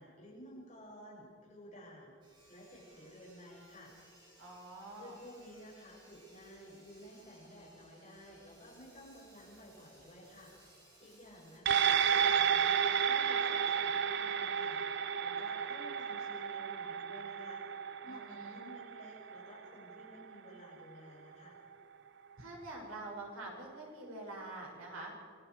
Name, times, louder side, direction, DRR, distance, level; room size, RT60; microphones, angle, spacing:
voice 1, 0.0-3.9 4.9-10.5 11.0-17.6 18.0-21.6, equal, 30° left, -4 dB, 7.0 m, -53 dB
Sawing, 2.2-11.6, right 1 dB, 20° right, 6.2 m, -62 dB
voice 2, 4.4-5.2 18.0-18.6 22.4-25.1, right 2 dB, 70° right, -2 dB, 6.3 m, -46 dB
sound 1, 11.7-20.3 20.7-20.8, right 7 dB, 55° right, 0.7 m, -32 dB
28.5 x 22.0 x 4.8 m, 2.3 s
head